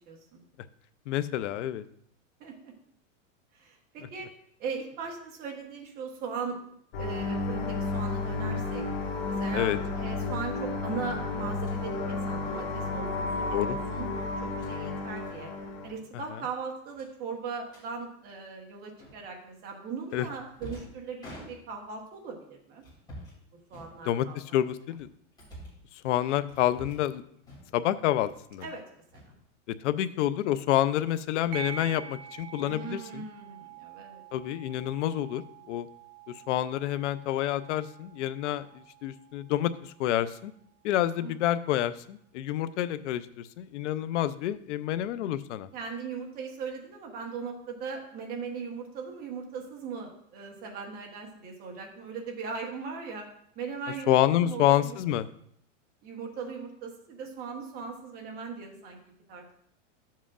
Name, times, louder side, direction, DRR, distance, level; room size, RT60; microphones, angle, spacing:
voice 1, 0.1-0.4 2.4-2.7 3.6-4.3 4.6-6.6 7.0-8.9 9.3-15.5 15.8-22.8 23.7-24.4 28.6-29.2 32.7-34.2 41.2-41.3 45.7-53.3 53.5-55.0 56.0-59.0 59.3-59.5, right 5 dB, 25° right, 1 dB, 1.1 m, -39 dB
voice 2, 1.1-1.8 9.5-9.8 13.5-13.8 20.1-20.3 24.1-25.1 26.0-27.2 27.7-28.7 29.8-33.2 34.3-35.9 36.5-40.5 40.8-45.7 54.1-55.3, left 12 dB, 70° left, 13 dB, 0.6 m, -28 dB
sound 1, 6.9-15.9, left 3 dB, 50° left, 1.6 m, -32 dB
sound 2, 11.6-11.8 13.3-13.5 14.4-14.8 15.2-15.4 15.6-15.9 16.1-16.2 16.9-17.9 19.0-19.4 20.1-22.0 22.8-23.4 23.7-24.4 24.9-25.9 26.5-27.1 27.4-27.9 28.2-28.8 29.1-29.9, equal, 10° left, 2.8 m, -48 dB
sound 3, 31.5-40.5, right 7 dB, 50° right, 0.7 m, -46 dB
11.0 x 7.4 x 2.5 m, 0.66 s
supercardioid pair, 170°, 37 cm